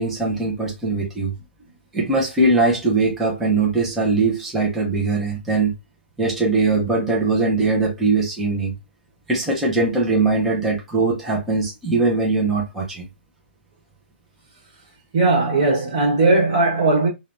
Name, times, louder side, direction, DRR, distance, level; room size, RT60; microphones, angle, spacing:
voice 1, 0.0-1.3 1.9-5.7 6.2-8.7 9.3-13.1, right 3 dB, 5° right, 0.3 m, -21 dB
voice 2, 15.1-17.1, right 2 dB, 30° right, 1.0 m, -18 dB
3.1 x 2.0 x 2.4 m
hypercardioid pair, 175°, 6 cm